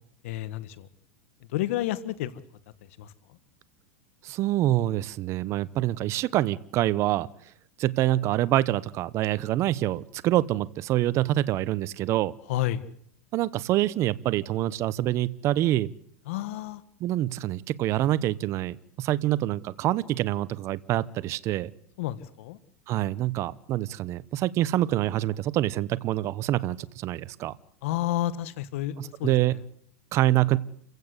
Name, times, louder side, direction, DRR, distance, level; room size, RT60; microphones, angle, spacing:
voice 1, 0.2-0.9 1.5-2.3 3.0-3.1 12.5-12.8 16.3-16.8 22.0-22.6 27.8-29.6, left 13 dB, 65° left, 15 dB, 1.6 m, -30 dB
voice 2, 4.2-7.3 7.8-12.3 13.3-15.9 17.0-21.7 22.9-27.5 29.0-29.5 30.1-30.6, right 14 dB, 40° right, 17 dB, 0.9 m, -26 dB
28.5 x 16.0 x 8.2 m, 0.64 s
supercardioid pair, 130°, 7 cm